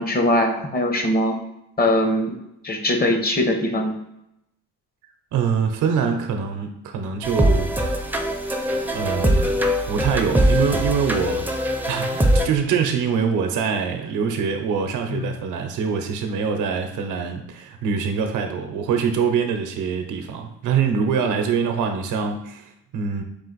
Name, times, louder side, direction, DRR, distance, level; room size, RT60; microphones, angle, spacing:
voice 1, 0.0-1.4 1.8-2.4 2.6-4.0 15.1-15.3, left 1 dB, 30° left, 4 dB, 0.9 m, -21 dB
voice 2, 5.3-7.7 8.9-11.4 11.9-23.2, right 6 dB, 85° right, 5 dB, 0.7 m, -24 dB
sound 1, 7.2-12.5, equal, 5° right, 0.5 m, -21 dB
4.8 x 2.5 x 4.0 m, 0.83 s
cardioid pair, 90°, 30 cm